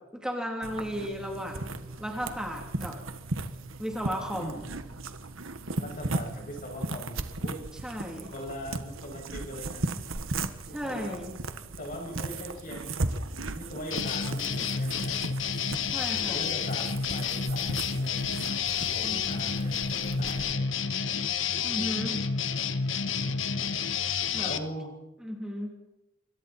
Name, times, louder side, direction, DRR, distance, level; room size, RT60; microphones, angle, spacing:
voice 1, 0.1-3.0 3.8-4.6 7.8-8.3 10.7-11.4 15.9-16.5 21.6-22.2 24.3-24.5 25.2-25.7, equal, 5° right, 0 dB, 3.1 m, -35 dB
sound 1, 0.6-20.5, right 2 dB, 90° right, 1.6 m, -37 dB
voice 2, 4.3-4.6 5.8-7.7 8.3-9.9 10.7-11.2 11.8-13.1 13.5-15.3 16.1-20.7 23.0-23.3 24.4-25.0, equal, 45° left, 2 dB, 6.8 m, -41 dB
sound 2, 13.9-24.6, left 6 dB, 70° left, 1.4 m, -30 dB
27.0 x 24.5 x 4.4 m, 0.94 s
head